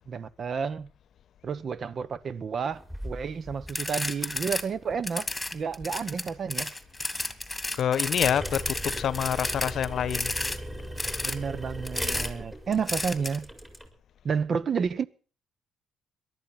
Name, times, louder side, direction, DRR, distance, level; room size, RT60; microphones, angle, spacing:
voice 1, 0.1-0.9 1.4-6.7 11.2-13.5 14.2-15.0, right 6 dB, 50° right, 1.0 m, -31 dB
sound 1, 2.7-13.9, equal, 15° right, 4.7 m, -40 dB
sound 2, 3.7-4.6 4.9-10.6 11.0-11.4 11.8-12.3 12.9-13.4, left 2 dB, 10° left, 2.2 m, -32 dB
voice 2, 7.7-10.3, left 9 dB, 65° left, 0.8 m, -27 dB
18.5 x 12.0 x 5.9 m
supercardioid pair, 70°, 0 cm